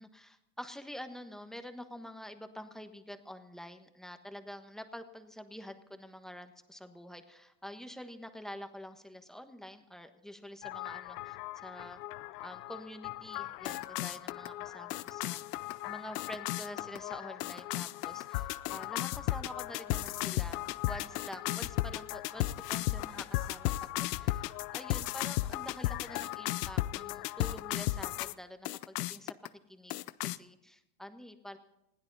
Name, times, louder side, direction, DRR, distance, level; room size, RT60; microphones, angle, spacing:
voice 1, 0.0-12.0 12.4-15.4 15.8-23.7 24.0-29.3 29.7-31.6, equal, ahead, 7 dB, 1.3 m, -47 dB
sound 1, 10.6-28.3 28.7-29.5 29.9-30.4, left 16 dB, 85° left, 0.7 m, -36 dB
20.5 x 15.5 x 4.1 m, 0.85 s
supercardioid pair, 125°, 45 cm